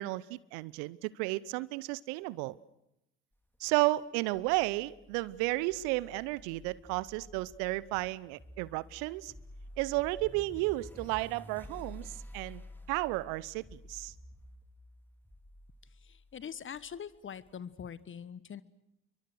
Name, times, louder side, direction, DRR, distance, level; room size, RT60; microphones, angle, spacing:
voice 1, 0.0-2.6 3.6-9.3 9.8-12.6 12.9-14.1, right 20 dB, 65° right, 21 dB, 0.8 m, -33 dB
sound 1, 4.3-17.5, left 1 dB, 5° left, 2.9 m, -51 dB
voice 2, 15.8-18.6, left 8 dB, 35° left, 17 dB, 1.3 m, -44 dB
29.5 x 23.5 x 6.4 m, 0.83 s
figure-of-eight pair, 55°, 35 cm